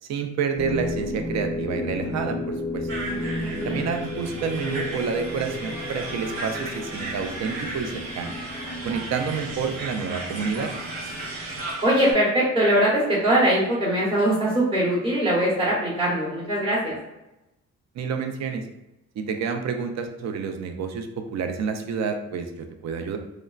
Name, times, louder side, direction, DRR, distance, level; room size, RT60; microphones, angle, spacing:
voice 1, 0.0-2.9 3.6-8.3 8.8-10.7 17.9-18.6 19.2-23.2, right 5 dB, 65° right, 6 dB, 0.5 m, -29 dB
sound 1, 0.6-11.7, left 1 dB, 20° left, 0.5 m, -33 dB
sound 2, 2.9-12.1, right 2 dB, 85° right, 0.8 m, -35 dB
voice 2, 3.0-3.8 11.8-16.9, right 1 dB, 20° right, -7 dB, 0.9 m, -22 dB
3.0 x 2.1 x 2.3 m, 0.93 s
cardioid pair, 90°, 30 cm